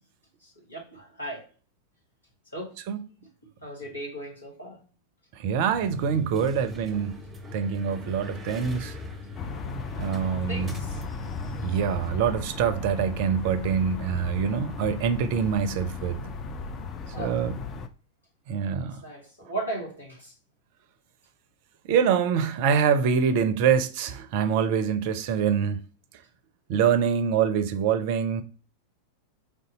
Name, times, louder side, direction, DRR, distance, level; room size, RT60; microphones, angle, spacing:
voice 1, 0.4-1.5 2.5-2.7 3.6-4.8 9.9-10.0 10.5-11.0 17.1-17.5 19.0-20.3, right 1 dB, 80° left, 1.8 m, -37 dB
voice 2, 5.4-7.2 7.5-9.0 10.0-10.7 11.6-16.2 17.2-17.6 18.5-19.0 21.9-25.8 26.7-28.4, right 7 dB, 45° right, 0.4 m, -25 dB
sound 1, 5.7-12.1, left 2 dB, 10° right, 0.8 m, -40 dB
sound 2, 9.3-17.9, left 4 dB, 30° left, 0.4 m, -36 dB
3.5 x 2.7 x 3.8 m
figure-of-eight pair, 90°, 0 cm